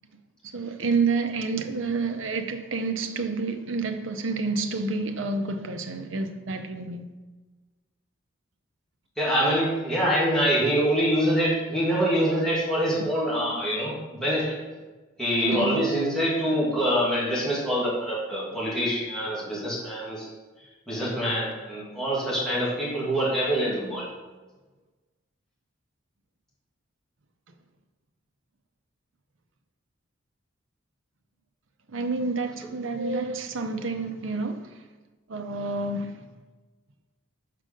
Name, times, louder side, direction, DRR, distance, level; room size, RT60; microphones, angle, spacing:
voice 1, 0.5-7.1 15.5-15.8 31.9-34.8 35.3-36.3, right 3 dB, 70° right, 0.7 m, -29 dB
voice 2, 9.2-14.6 15.2-20.3 20.9-24.1, equal, 5° left, 2.1 m, -25 dB
6.7 x 4.9 x 5.2 m
head